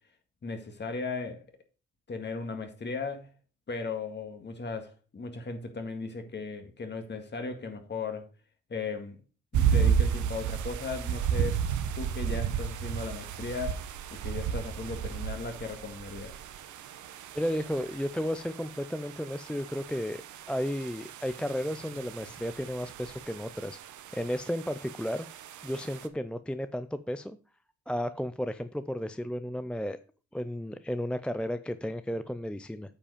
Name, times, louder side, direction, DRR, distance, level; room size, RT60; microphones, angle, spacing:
voice 1, 0.4-1.4 2.1-3.3 3.7-8.3 8.7-9.2 9.5-11.6 12.0-13.8 14.1-16.4, left 4 dB, 35° left, 2.0 m, -37 dB
sound 1, 9.5-26.1, right 8 dB, 75° right, 1.0 m, -33 dB
voice 2, 17.3-20.2 20.5-23.8 24.1-27.4 27.9-30.0 30.3-32.9, equal, 5° left, 0.4 m, -33 dB
8.7 x 5.1 x 5.0 m
cardioid pair, 90°, 30 cm